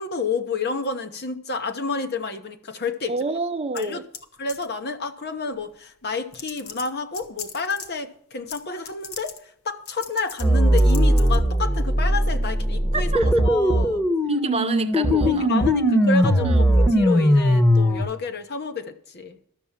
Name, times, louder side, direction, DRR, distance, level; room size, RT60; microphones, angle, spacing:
voice 1, 0.0-3.1 3.7-4.0 4.4-14.1 15.3-19.4, left 4 dB, 50° left, 1.1 m, -30 dB
voice 2, 3.1-4.0 12.9-13.3 14.3-15.5 16.4-16.6, right 3 dB, 30° right, 0.7 m, -28 dB
sound 1, 3.7-4.2 4.5-4.8 5.7-5.8 6.3-7.9 8.5-8.6 8.8-9.4 9.9-10.4 10.8-11.4, left 7 dB, 75° left, 1.5 m, -38 dB
sound 2, 10.4-18.0, equal, 10° left, 1.1 m, -19 dB
12.5 x 6.9 x 7.4 m
head